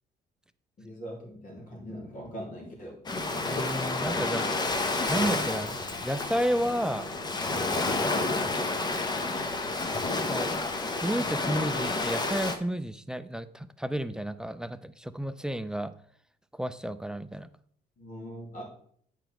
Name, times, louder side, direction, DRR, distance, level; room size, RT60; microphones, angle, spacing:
voice 1, 0.8-3.0 18.0-18.6, equal, 55° left, -1 dB, 3.2 m, -41 dB
Ocean, 3.1-12.6, left 3 dB, 25° left, 0.9 m, -30 dB
voice 2, 3.5-4.8 5.1-7.1 8.5-8.7 9.7-10.0 10.3-15.9 16.5-17.5, right 1 dB, 5° right, 12 dB, 0.4 m, -32 dB
9.0 x 5.1 x 4.5 m, 0.62 s
cardioid pair, 110°, 17 cm